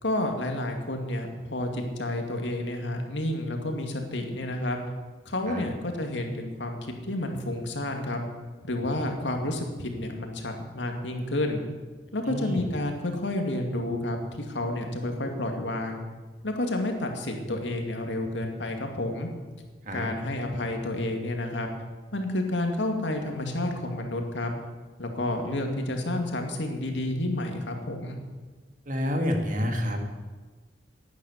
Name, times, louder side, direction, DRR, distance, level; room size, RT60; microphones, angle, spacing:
voice 1, 0.0-4.8 5.3-8.2 8.6-11.6 12.1-16.0 16.4-19.3 19.9-21.7 22.1-24.5 25.0-28.2, left 1 dB, 90° left, 4 dB, 2.3 m, -30 dB
voice 2, 12.3-12.7 19.8-20.1 28.9-30.0, left 1 dB, 45° right, 3 dB, 2.2 m, -28 dB
11.5 x 9.6 x 9.6 m, 1.3 s
head